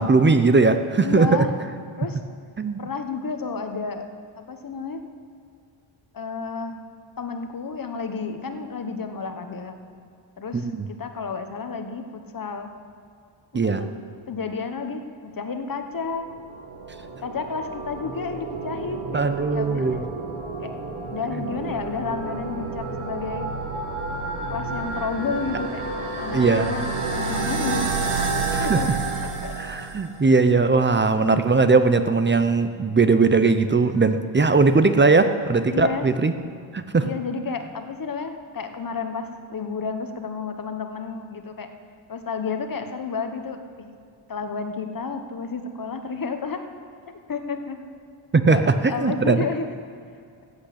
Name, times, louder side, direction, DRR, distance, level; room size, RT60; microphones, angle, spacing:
voice 1, 0.0-1.5 2.6-2.8 10.5-10.9 13.5-13.9 19.1-20.0 26.3-26.7 28.5-28.9 29.6-36.3 36.7-37.1 48.3-48.7 49.0-49.4, right 4 dB, 25° right, 10 dB, 0.5 m, -19 dB
voice 2, 1.0-1.5 2.0-2.2 2.8-4.0 4.4-5.0 6.1-6.8 7.2-9.8 10.4-12.7 13.5-13.9 14.3-16.3 17.2-19.2 19.5-20.0 20.6-20.7 21.1-23.5 24.5-25.8 26.2-26.9 27.1-28.1 28.6-28.9 29.2-29.5 35.7-36.1 37.0-41.7 42.1-43.6 44.3-46.6 47.3-47.8 48.4-48.6 48.9-49.7, left 5 dB, 45° left, 7 dB, 1.1 m, -31 dB
sound 1, 16.1-30.3, right 3 dB, 85° right, 2.0 m, -30 dB
14.5 x 7.9 x 8.5 m, 2.3 s
wide cardioid pair, 165°, 49 cm